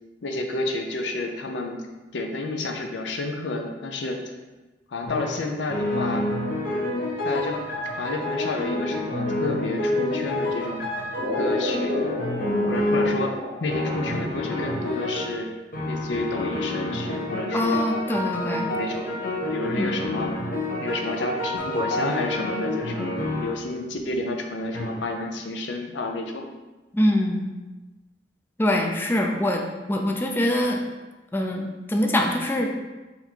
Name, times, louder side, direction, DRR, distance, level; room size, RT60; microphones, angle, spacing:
voice 1, 0.2-1.8 2.1-4.2 4.9-6.2 6.7-7.6 7.9-10.8 11.3-12.0 12.6-15.5 15.9-17.8 18.4-19.1 19.5-20.3 20.8-26.5, left 2 dB, 85° left, 3 dB, 0.6 m, -30 dB
sound 1, 5.1-5.4 5.7-13.3 13.7-15.4 15.7-23.7 24.7-24.9, left 1 dB, 55° left, 0.8 m, -28 dB
sound 2, 11.1-15.2, equal, 65° right, 0.8 m, -33 dB
voice 2, 17.5-18.7 19.8-19.9 26.9-27.5 28.6-30.8 31.3-32.7, left 1 dB, 10° left, 2 dB, 0.3 m, -24 dB
4.2 x 2.6 x 4.4 m, 1.2 s
head